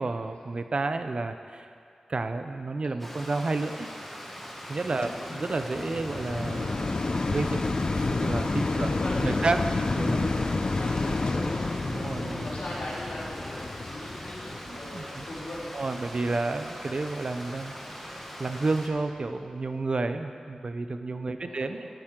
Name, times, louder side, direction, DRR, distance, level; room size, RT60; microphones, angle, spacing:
voice 1, 0.0-1.7 2.1-3.9 4.7-7.6 7.9-9.6 9.9-10.3 11.9-12.5 14.6-15.2 15.7-21.9, right 3 dB, 55° right, 8 dB, 0.5 m, -31 dB
Stream, 3.0-18.9, equal, 5° left, 1.4 m, -42 dB
voice 2, 4.9-5.2 8.6-9.7 10.0-15.7 21.3-21.9, left 1 dB, 80° left, -7 dB, 2.9 m, -39 dB
sound 1, 5.0-16.3 16.9-17.0, left 3 dB, 45° left, 0.5 m, -30 dB
14.0 x 9.1 x 3.8 m, 2.4 s
wide cardioid pair, 85°, 2 cm